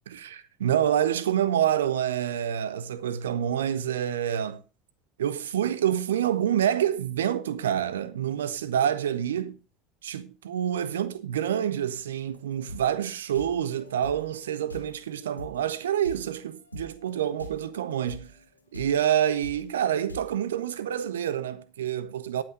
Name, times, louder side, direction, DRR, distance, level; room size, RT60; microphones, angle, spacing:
voice 1, 0.1-4.6 5.2-9.6 10.0-18.3 18.7-22.4, right 10 dB, 70° right, 0.8 m, -27 dB
sound 1, 12.3-17.7 18.1-20.4, left 2 dB, 90° left, 1.8 m, -45 dB
18.0 x 6.1 x 3.8 m
figure-of-eight pair, 70°, 0 cm